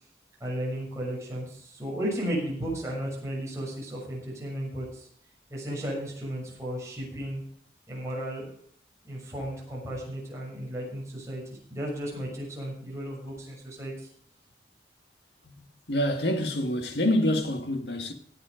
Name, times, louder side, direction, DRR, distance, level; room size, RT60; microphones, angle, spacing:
voice 1, 0.4-5.1 5.5-7.4 7.9-8.5 9.0-11.4 11.7-13.9, right 1 dB, 15° right, 6.6 m, -34 dB
voice 2, 15.6-18.1, left 1 dB, 65° left, 2.0 m, -27 dB
18.5 x 8.8 x 5.1 m
head